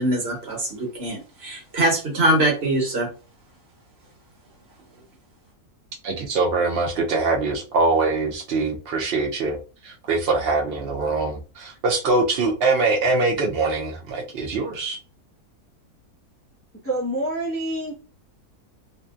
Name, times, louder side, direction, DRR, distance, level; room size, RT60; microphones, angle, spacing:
voice 1, 0.0-3.1, right 1 dB, 45° right, 1.2 m, -23 dB
voice 2, 6.0-9.6 9.8-15.0, right 3 dB, 90° right, 0.5 m, -23 dB
voice 3, 16.8-17.9, right 1 dB, 15° left, 0.6 m, -26 dB
2.8 x 2.6 x 2.3 m
omnidirectional pair, 1.6 m